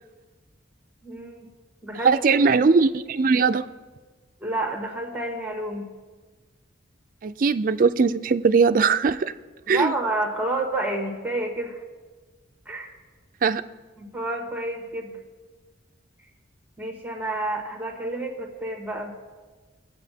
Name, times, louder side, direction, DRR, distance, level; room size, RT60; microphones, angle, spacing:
voice 1, 1.0-1.5 1.8-2.4 4.4-5.9 9.7-11.8 12.6-12.9 14.0-15.2 16.8-19.1, right 2 dB, 10° right, 1 dB, 1.3 m, -29 dB
voice 2, 2.0-3.6 7.2-9.3 9.7-9.9 13.4-13.6, right 5 dB, 45° right, 10 dB, 0.4 m, -20 dB
22.5 x 8.1 x 2.8 m, 1.4 s
head